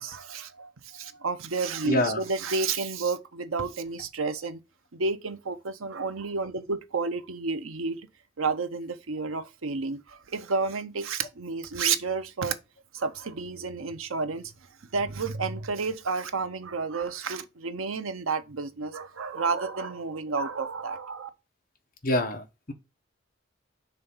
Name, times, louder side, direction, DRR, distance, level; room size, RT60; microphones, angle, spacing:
voice 1, 0.0-4.6 4.9-8.1 8.4-12.6 12.9-14.5 14.9-21.3, right 4 dB, 90° right, 0.7 m, -31 dB
voice 2, 1.8-2.2 22.0-22.7, left 1 dB, 45° left, 1.1 m, -26 dB
5.2 x 3.4 x 5.5 m
head